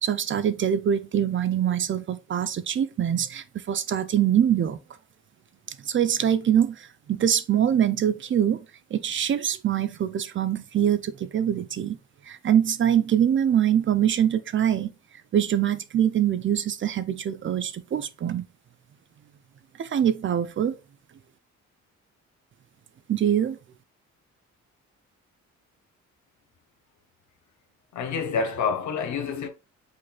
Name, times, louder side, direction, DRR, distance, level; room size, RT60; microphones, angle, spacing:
voice 1, 0.0-4.8 5.8-8.6 8.9-12.0 12.2-14.9 15.3-18.4 19.8-20.7 23.1-23.6, right 9 dB, 40° right, 0.5 m, -24 dB
voice 2, 27.9-29.5, left 5 dB, 70° left, 1.1 m, -27 dB
5.2 x 3.9 x 2.3 m
cardioid pair, 90°, 30 cm